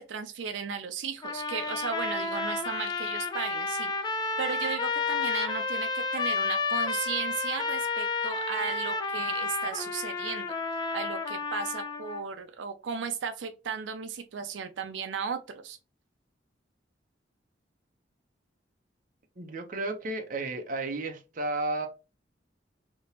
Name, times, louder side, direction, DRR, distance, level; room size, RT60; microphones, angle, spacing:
voice 1, 0.0-3.9 4.4-10.5 10.9-15.8, right 6 dB, 85° right, 0.4 m, -35 dB
sound 1, 1.2-12.2, left 4 dB, 25° left, 0.5 m, -31 dB
voice 2, 19.4-21.9, right 2 dB, 45° right, 0.7 m, -33 dB
3.5 x 2.8 x 2.8 m
head